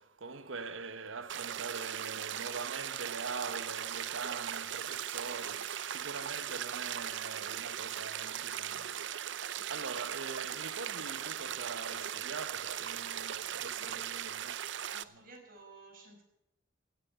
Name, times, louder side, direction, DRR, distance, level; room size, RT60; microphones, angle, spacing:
voice 1, 0.0-14.6 15.1-15.3, right 4 dB, 85° right, 1.1 m, -43 dB
sound 1, 1.3-15.0, right 10 dB, 65° right, 0.6 m, -39 dB
sound 2, 4.5-9.5 9.7-9.9 10.3-10.4, right 7 dB, 25° right, 1.3 m, -58 dB
voice 2, 14.9-16.2, right 3 dB, 50° right, 5.2 m, -53 dB
17.0 x 9.3 x 9.1 m
head